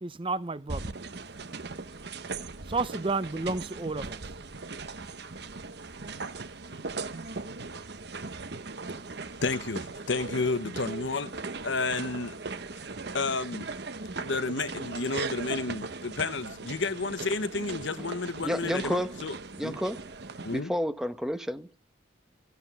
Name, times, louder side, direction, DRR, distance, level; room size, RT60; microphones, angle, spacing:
voice 1, 0.0-0.9 2.7-4.2, right 3 dB, 25° right, 0.6 m, -31 dB
sound 1, 0.7-20.6, right 3 dB, 55° right, 1.0 m, -39 dB
voice 2, 9.4-11.3 11.6-12.3 13.1-13.7 14.2-19.4 19.6-19.8 20.4-20.7, left 3 dB, 70° left, 1.1 m, -31 dB
voice 3, 18.4-19.1 19.6-20.0 20.5-21.8, equal, ahead, 1.0 m, -30 dB
15.0 x 8.2 x 5.9 m
head